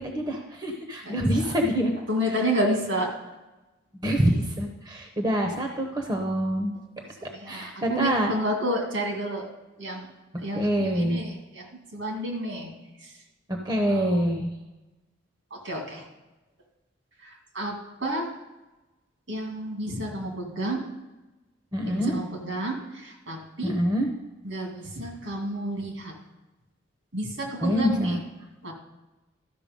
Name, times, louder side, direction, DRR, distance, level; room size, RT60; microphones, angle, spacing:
voice 1, 0.0-2.0 2.2-2.3 4.0-6.7 7.2-8.3 10.5-11.2 13.5-14.5 21.7-22.2 23.6-24.1 27.6-28.2, equal, 20° right, 2 dB, 0.8 m, -26 dB
voice 2, 1.0-1.6 2.1-3.1 7.2-9.4 9.8-10.1 10.4-12.7 13.0-13.1 13.9-14.2 15.5-16.0 17.2-17.8 18.0-18.3 19.3-20.8 21.8-23.7 24.4-26.2 27.1-28.2 28.6-28.7, right 1 dB, 70° right, 1 dB, 2.3 m, -30 dB
13.0 x 5.8 x 5.3 m, 1.1 s
head